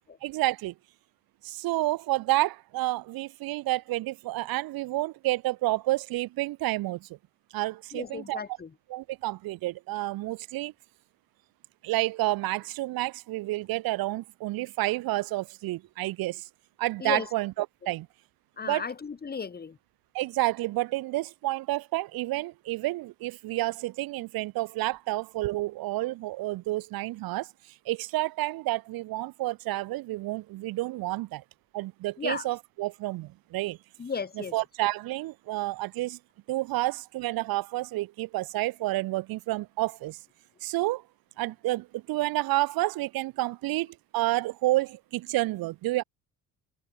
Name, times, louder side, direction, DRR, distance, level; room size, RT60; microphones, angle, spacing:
voice 1, 0.2-0.7 1.4-7.1 7.5-8.4 8.9-10.7 11.8-16.5 16.8-18.1 18.6-18.8 20.1-27.5 27.8-31.4 31.7-33.8 34.5-36.2 36.5-40.2 40.6-41.0 41.4-46.0, right 18 dB, 80° right, 1.7 m, -30 dB
voice 2, 7.9-8.7 17.0-17.3 18.6-19.8 32.2-32.5 34.0-34.6, left 5 dB, 25° left, 3.8 m, -34 dB
cardioid pair, 130°, 35 cm